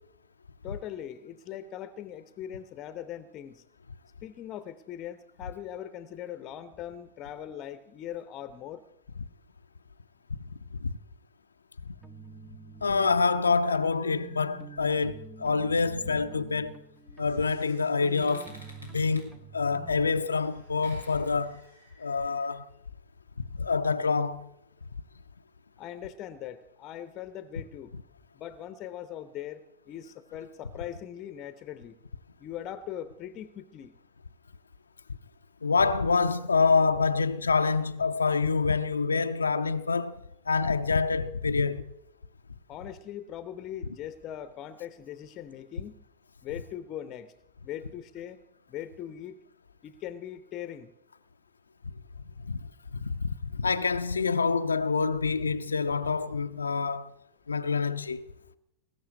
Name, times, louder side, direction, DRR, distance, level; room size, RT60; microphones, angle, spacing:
voice 1, 0.6-3.6 4.2-8.8 25.8-27.9 28.3-31.9 32.4-33.9 42.7-46.0 46.4-47.3 47.6-48.4 48.7-49.4 49.8-50.9, left 10 dB, 35° left, 0.7 m, -40 dB
sound 1, 12.0-20.1, right 4 dB, 10° right, 0.9 m, -48 dB
voice 2, 12.8-16.8 17.2-18.6 18.9-21.6 22.0-22.6 23.6-24.5 35.6-40.2 40.5-41.9 52.4-52.6 52.9-57.1 57.5-58.3, left 4 dB, 75° left, 0.5 m, -26 dB
sound 2, 16.9-22.5, left 1 dB, 85° right, 4.2 m, -55 dB
19.5 x 7.1 x 9.6 m
figure-of-eight pair, 90°, 0 cm